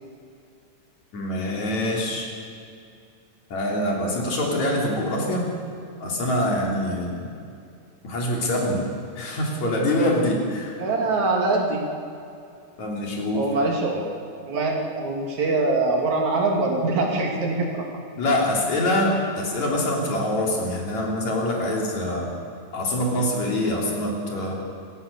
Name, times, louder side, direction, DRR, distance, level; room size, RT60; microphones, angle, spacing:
voice 1, 1.1-2.3 3.5-5.5 6.0-7.3 8.0-8.8 9.2-10.7 12.8-13.5 18.2-22.3 22.7-24.5, left 1 dB, 70° left, -1 dB, 4.7 m, -24 dB
voice 2, 10.8-11.8 13.3-14.1 14.5-17.9, right 3 dB, 70° right, 0 dB, 4.1 m, -23 dB
28.0 x 15.0 x 7.0 m, 2.5 s
omnidirectional pair, 3.4 m